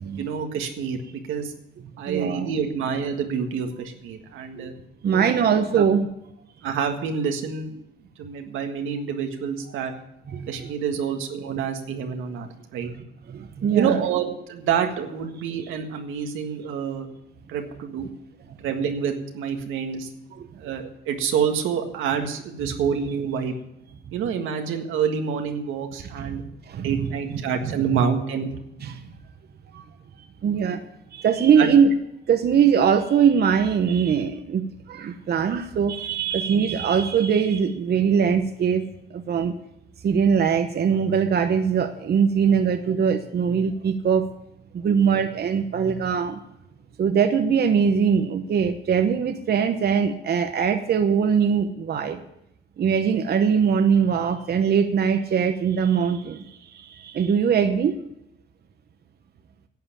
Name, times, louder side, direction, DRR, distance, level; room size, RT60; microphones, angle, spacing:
voice 1, 0.1-1.5 2.0-4.7 5.1-5.5 5.8-5.9 6.6-7.8 8.2-9.9 10.5-12.9 13.7-17.1 17.5-18.1 18.6-20.1 20.5-23.5 24.1-26.4 26.8-28.5 31.6-31.7, right 7 dB, 90° right, 4 dB, 1.7 m, -27 dB
voice 2, 2.1-2.5 4.6-4.7 5.0-6.1 9.8-9.9 10.3-10.7 13.3-14.0 20.4-20.5 26.2-26.3 26.7-27.1 27.3-27.4 28.8-29.0 29.7-29.8 30.4-30.8 31.1-31.9 32.3-38.8 39.1-39.5 40.0-44.2 44.7-46.4 47.0-52.2 52.8-56.4 56.7-57.9, right 7 dB, 55° right, 7 dB, 1.0 m, -21 dB
11.5 x 7.8 x 8.7 m, 0.82 s
cardioid pair, 90°, 20 cm